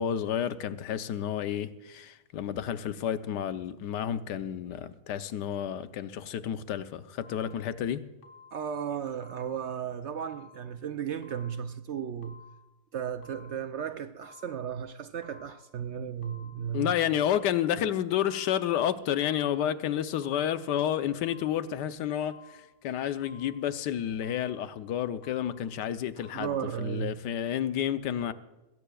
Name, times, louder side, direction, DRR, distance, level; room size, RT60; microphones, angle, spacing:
voice 1, 0.0-8.0 16.7-28.3, left 10 dB, 85° left, 1.4 m, -30 dB
sound 1, 7.2-7.8 8.2-8.8 9.2-9.8 10.2-10.8 11.2-11.8 12.2-12.8 13.2-13.8 14.2-14.8 15.2-15.8 16.2-16.8 17.2-17.8 18.2-18.8 19.2-19.8 20.2-20.8 21.2-21.8 22.2-22.8 23.2-23.8 24.2-24.8 25.2-25.8 26.2-26.5, left 5 dB, 50° left, 1.7 m, -55 dB
voice 2, 8.5-12.4 12.9-16.9 26.2-27.2, right 8 dB, 70° right, 0.6 m, -35 dB
20.5 x 17.0 x 2.3 m
omnidirectional pair, 1.8 m